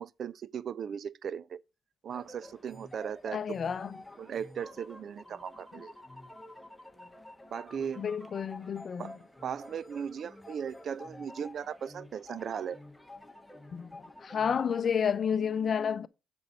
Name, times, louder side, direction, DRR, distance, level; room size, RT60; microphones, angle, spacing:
voice 1, 0.0-1.6 2.0-3.4 4.2-5.9 7.5-8.1 9.0-12.8, right 8 dB, 55° right, 0.4 m, -37 dB
sound 1, 2.1-14.9, left 1 dB, 5° left, 1.2 m, -50 dB
voice 2, 3.3-3.9 8.0-9.1 13.7-13.9 14.2-16.1, left 7 dB, 50° left, 0.6 m, -30 dB
7.4 x 6.2 x 5.4 m
cardioid pair, 90°, 0 cm